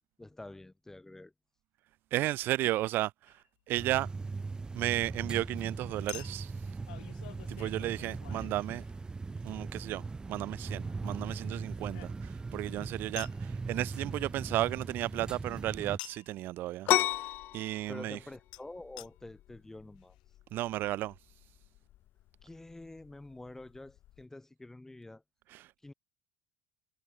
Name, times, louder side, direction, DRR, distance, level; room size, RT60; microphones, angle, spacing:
voice 1, 0.2-1.3 17.9-20.2 22.4-25.2 25.8-25.9, left 2 dB, 10° left, 6.2 m, -47 dB
voice 2, 2.1-4.1 4.7-6.7 7.5-8.8 9.4-10.0 10.3-18.2 20.5-21.1 25.5-25.7, right 15 dB, 55° right, 0.5 m, -34 dB
Chink clink, 3.3-3.4 6.1-9.3 10.8-12.5 13.2-13.4 16.0-16.4 18.5-18.6 19.0-19.1 19.7-19.8 20.0-20.1, left 19 dB, 75° left, 4.3 m, -49 dB
sound 1, 3.8-16.0, right 3 dB, 20° right, 1.9 m, -39 dB
sound 2, 16.9-24.3, left 14 dB, 55° left, 1.5 m, -35 dB
hypercardioid pair, 75°, 4 cm